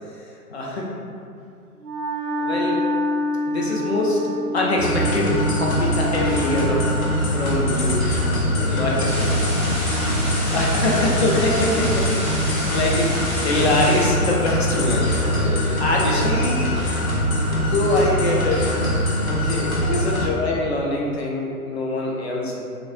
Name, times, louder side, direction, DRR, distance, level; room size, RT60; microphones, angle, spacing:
voice 1, 0.5-0.8 2.4-2.9 3.5-8.1 8.7-9.1 10.5-14.9 15.8-16.8 17.5-18.7 19.3-22.6, left 2 dB, 45° left, -3 dB, 0.4 m, -24 dB
Wind instrument woodwind instrument, 1.8-7.2, left 1 dB, 80° right, 0.7 m, -27 dB
sound 1, 4.8-20.3, equal, 65° left, 0.8 m, -23 dB
voice 2, 8.0-9.6 10.2-10.4 14.8-16.6 17.2-17.3 18.9-19.0 20.0-20.1, right 1 dB, 35° right, -6 dB, 0.4 m, -32 dB
sound 2, 9.0-14.0, equal, 10° left, 1.1 m, -30 dB
3.0 x 2.0 x 2.6 m, 2.4 s
figure-of-eight pair, 120°, 46 cm